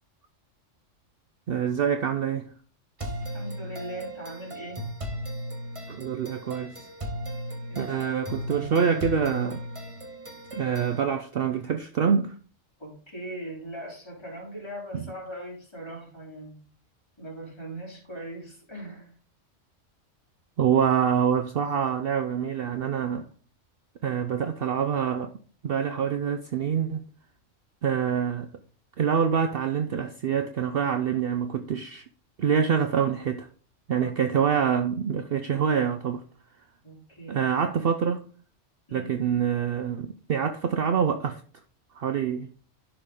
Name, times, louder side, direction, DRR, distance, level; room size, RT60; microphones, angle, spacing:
voice 1, 1.5-2.5 5.9-6.8 7.8-9.6 10.5-12.4 14.9-15.0 20.6-23.3 24.0-25.3 25.6-27.0 27.8-28.5 29.0-32.0 32.4-33.5 33.9-36.2 37.3-38.2 38.9-41.4 41.9-42.5, right 7 dB, 60° right, 0.7 m, -26 dB
sound 1, 3.0-11.0, right 1 dB, 25° right, 1.4 m, -36 dB
voice 2, 3.3-4.9 7.7-8.4 12.8-16.6 17.2-19.1 33.9-34.1 36.8-37.5 38.9-39.1, right 1 dB, 20° left, 3.7 m, -40 dB
11.5 x 5.0 x 3.7 m
omnidirectional pair, 1.3 m